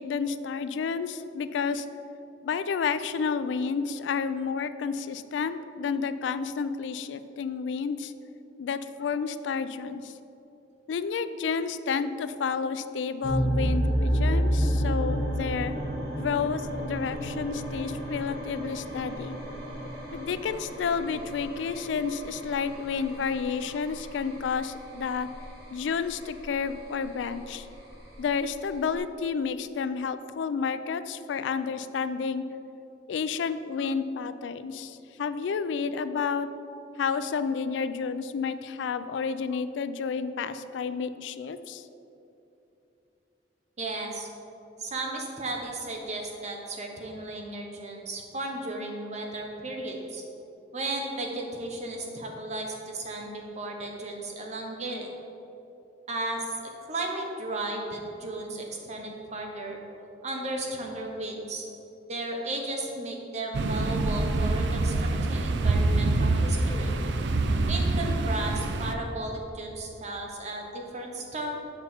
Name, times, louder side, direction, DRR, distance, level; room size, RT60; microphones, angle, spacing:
voice 1, 0.0-1.9 2.4-8.1 8.6-10.1 10.9-15.7 16.2-19.4 20.1-25.3 25.7-27.7 28.2-32.4 33.1-36.5 37.0-41.9, left 5 dB, 90° left, 12 dB, 0.3 m, -30 dB
sound 1, 13.2-29.0, equal, 60° right, 1.7 m, -31 dB
voice 2, 43.8-44.3 44.8-50.2 50.7-55.1 56.1-59.8 60.2-61.7 62.1-66.9 67.7-71.5, right 2 dB, 40° right, 1 dB, 1.0 m, -35 dB
sound 2, 63.5-69.0, right 2 dB, 75° right, 0.5 m, -26 dB
7.6 x 5.5 x 4.4 m, 2.9 s
head